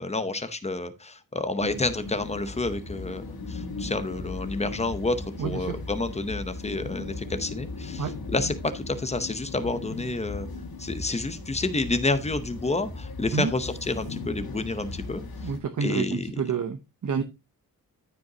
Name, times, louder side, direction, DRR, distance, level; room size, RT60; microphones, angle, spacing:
voice 1, 0.0-10.5 10.8-15.2 15.8-16.4, left 2 dB, 20° left, 10 dB, 0.8 m, -29 dB
sound 1, 1.6-15.6, left 3 dB, 85° left, 1.8 m, -37 dB
voice 2, 5.4-5.8 8.0-8.1 13.3-13.5 15.4-17.2, right 6 dB, 55° right, 7 dB, 0.8 m, -29 dB
13.5 x 5.3 x 2.8 m, 0.25 s
wide cardioid pair, 180°, 35 cm